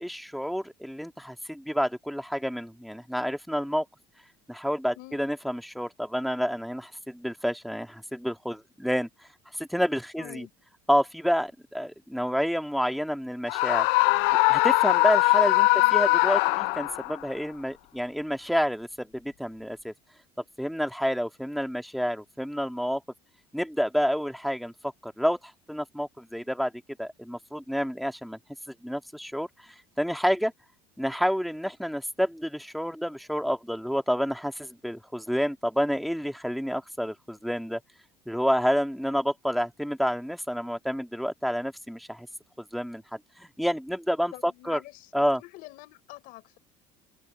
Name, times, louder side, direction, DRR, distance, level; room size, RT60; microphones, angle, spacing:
voice 1, 0.0-3.9 4.5-9.1 9.6-10.5 10.9-13.9 14.5-19.9 20.6-23.0 23.5-26.7 27.0-28.4 28.8-29.5 30.0-30.5 31.0-37.8 38.3-42.3 42.7-43.0 43.4-44.8 45.1-45.4, equal, ahead, 1.9 m, -29 dB
voice 2, 10.2-10.5 15.7-15.9 44.3-45.1 45.4-46.6, left 20 dB, 70° left, 6.4 m, -46 dB
Screaming, 13.5-17.2, left 22 dB, 85° left, 0.5 m, -21 dB
cardioid pair, 160°, 15 cm